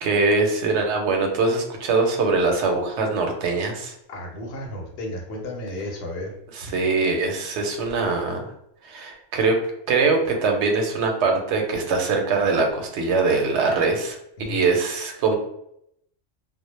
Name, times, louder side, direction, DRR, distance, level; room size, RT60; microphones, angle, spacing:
voice 1, 0.0-3.9 6.5-8.5 8.8-9.6 9.9-14.2 14.5-15.3, right 4 dB, 75° right, 3 dB, 0.9 m, -22 dB
voice 2, 4.1-6.3 14.4-14.7, left 1 dB, 65° left, 0 dB, 0.9 m, -33 dB
2.1 x 2.1 x 3.0 m, 0.75 s
omnidirectional pair, 1.2 m